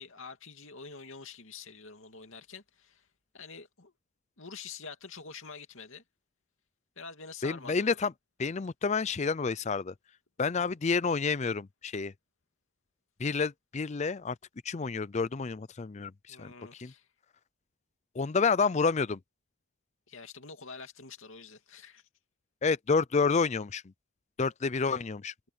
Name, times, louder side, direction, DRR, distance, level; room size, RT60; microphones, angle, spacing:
voice 1, 0.0-3.1 3.3-3.9 4.4-6.0 7.0-8.0 16.3-17.1 20.1-22.1, left 5 dB, 60° left, 2.8 m, -46 dB
voice 2, 7.4-8.1 8.4-9.9 10.4-12.1 13.2-14.4 14.6-16.5 16.8-16.9 18.1-19.2 22.6-23.8 24.4-25.3, left 4 dB, 30° left, 0.4 m, -29 dB
head